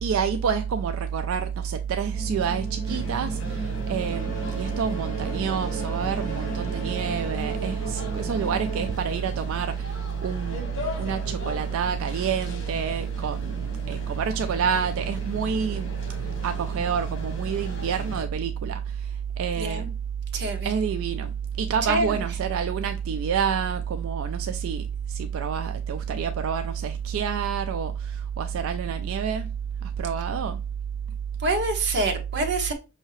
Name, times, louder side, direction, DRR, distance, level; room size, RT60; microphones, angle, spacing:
voice 1, 0.0-10.6 11.0-15.9 16.4-19.9 20.6-29.5 29.8-30.6, right 7 dB, 80° right, 0.3 m, -27 dB
sound 1, 2.1-8.9, right 2 dB, 40° left, 1.4 m, -35 dB
sound 2, 2.8-18.2, left 2 dB, 60° left, 1.7 m, -39 dB
voice 2, 19.6-19.9 20.3-20.7 21.9-22.2 31.4-32.7, right 2 dB, 55° right, 1.0 m, -26 dB
5.5 x 2.7 x 3.0 m
head